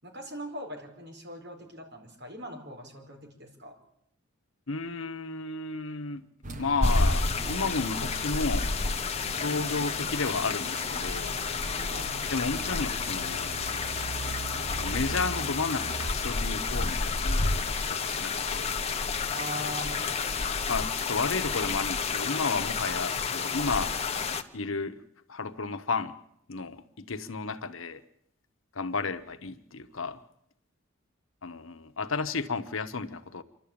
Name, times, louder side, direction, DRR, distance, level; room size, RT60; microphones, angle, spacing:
voice 1, 0.0-3.7 11.9-12.1 19.3-20.3, equal, 55° right, 2 dB, 4.6 m, -41 dB
voice 2, 4.7-6.2 6.6-8.7 9.3-11.4 12.3-13.5 14.8-18.7 20.7-24.0 24.5-25.0 25.3-26.1 26.5-28.0 28.7-30.2 31.4-33.4, left 4 dB, 75° left, 10 dB, 1.1 m, -32 dB
sound 1, 6.4-16.1, right 2 dB, 40° right, 1.1 m, -40 dB
sound 2, 6.8-24.4, left 4 dB, 30° left, 1.0 m, -30 dB
27.5 x 12.5 x 8.7 m, 0.78 s
head